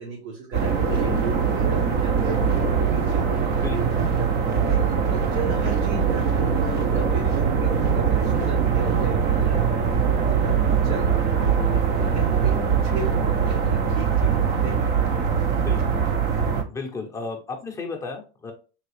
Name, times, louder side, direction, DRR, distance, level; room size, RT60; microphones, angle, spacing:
voice 1, 0.0-3.4 3.7-9.8 10.2-11.5 11.9-15.0, right 4 dB, 80° right, -4 dB, 1.5 m, -35 dB
sound 1, 0.5-16.6, right 6 dB, 30° right, 0.5 m, -22 dB
voice 2, 0.9-1.3 3.5-3.9 6.8-7.1 11.7-12.1 15.5-16.1 16.7-18.5, left 4 dB, 10° left, 0 dB, 0.6 m, -35 dB
3.9 x 2.4 x 3.1 m, 0.34 s
supercardioid pair, 130°, 33 cm